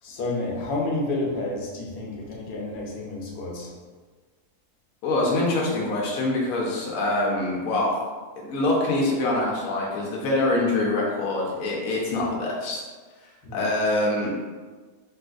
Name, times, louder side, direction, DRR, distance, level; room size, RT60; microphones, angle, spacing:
voice 1, 0.0-3.7 13.4-13.7, left 2 dB, 85° left, -3 dB, 1.2 m, -30 dB
voice 2, 5.0-8.0 8.4-12.8 13.5-14.4, left 2 dB, 70° left, -3 dB, 1.1 m, -24 dB
3.6 x 2.5 x 2.3 m, 1.4 s
omnidirectional pair, 1.7 m